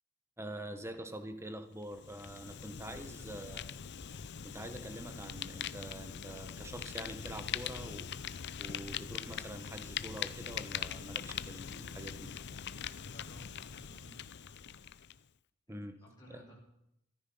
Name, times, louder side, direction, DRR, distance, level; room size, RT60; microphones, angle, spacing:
voice 1, 0.4-3.6 4.1-12.3 15.7-16.0 16.3-16.4, right 1 dB, 10° right, 8 dB, 1.3 m, -46 dB
Fire, 1.8-15.2, left 8 dB, 50° left, 0.6 m, -42 dB
voice 2, 3.0-3.3 13.1-14.2 15.7-16.5, right 1 dB, 20° left, -5 dB, 4.6 m, -57 dB
15.0 x 14.0 x 5.6 m, 0.80 s
head